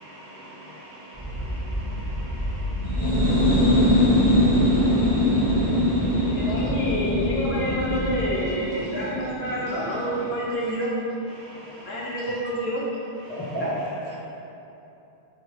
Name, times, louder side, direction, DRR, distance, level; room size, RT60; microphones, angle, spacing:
voice 1, 0.0-6.4 11.4-11.9, right 1 dB, 50° right, -7 dB, 0.8 m, -45 dB
sound 1, 1.1-8.2, equal, ahead, 0.8 m, -30 dB
sound 2, 2.8-10.4, left 1 dB, 50° left, 1.2 m, -22 dB
voice 2, 6.2-10.9 11.8-12.8, equal, 75° left, -5 dB, 1.0 m, -28 dB
voice 3, 13.3-14.2, equal, 20° left, -7 dB, 0.3 m, -30 dB
4.5 x 2.5 x 3.0 m, 2.9 s
omnidirectional pair, 1.1 m